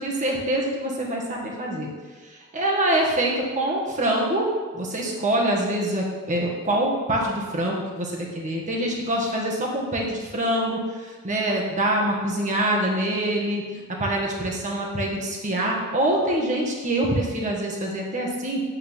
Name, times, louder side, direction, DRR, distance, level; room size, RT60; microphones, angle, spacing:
voice 1, 0.0-1.9 2.2-4.5 4.7-13.6 14.0-18.6, right 1 dB, 35° right, -2 dB, 1.5 m, -25 dB
8.6 x 7.6 x 3.6 m, 1.4 s
head